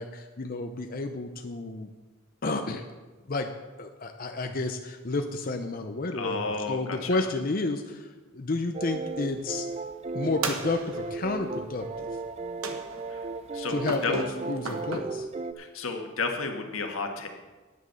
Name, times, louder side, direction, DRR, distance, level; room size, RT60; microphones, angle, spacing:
voice 1, 0.0-1.9 2.4-2.8 3.3-3.5 3.8-8.1 8.3-9.6 10.1-12.1 13.7-15.3, left 3 dB, 45° left, 5 dB, 0.7 m, -31 dB
voice 2, 6.1-7.3 13.1-14.2 15.6-17.3, left 4 dB, 90° left, 4 dB, 1.5 m, -33 dB
sound 1, 8.7-15.5, right 3 dB, 30° right, 0.5 m, -35 dB
sound 2, 10.4-11.3 12.6-13.2 13.9-15.0, right 3 dB, 85° right, 1.2 m, -35 dB
9.7 x 8.0 x 6.8 m, 1.2 s
head